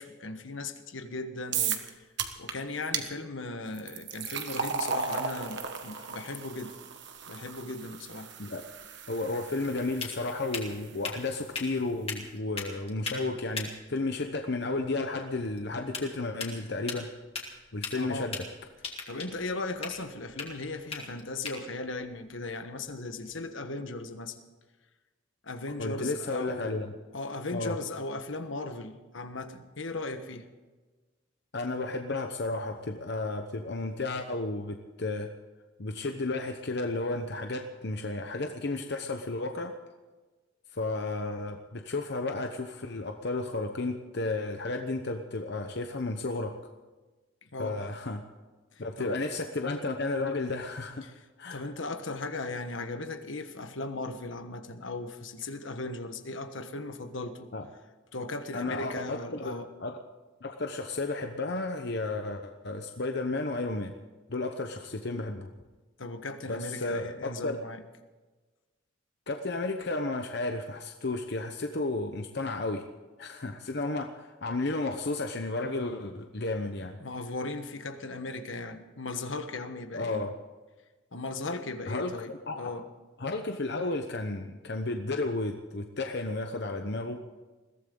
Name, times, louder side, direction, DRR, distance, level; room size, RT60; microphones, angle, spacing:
voice 1, 0.0-1.9 2.4-6.8 7.3-8.3 17.9-18.3 19.1-24.4 25.4-26.7 27.1-30.5 47.5-47.8 49.0-49.3 51.0-51.1 51.5-57.5 58.1-59.7 66.0-67.8 77.0-80.2 81.1-82.8, left 2 dB, 75° left, 8 dB, 1.3 m, -37 dB
sound 1, 1.5-1.9 2.2-2.5 2.9-3.1 3.7-10.9, right 6 dB, 60° right, 1.4 m, -35 dB
sound 2, 8.8-23.4, left 4 dB, 30° left, 2.5 m, -42 dB
voice 2, 9.1-17.1 17.7-18.4 25.8-26.9 27.5-27.7 31.5-35.3 35.8-39.7 40.7-46.5 47.6-48.2 48.8-51.0 51.4-51.7 57.5-57.7 58.5-59.5 59.8-60.0 60.4-63.9 64.3-65.5 66.5-67.6 69.3-72.8 73.2-77.0 79.9-80.3 81.9-82.1 82.5-82.8 83.2-87.2, left 2 dB, 55° left, 5 dB, 0.9 m, -33 dB
21.5 x 16.0 x 3.9 m, 1.3 s
head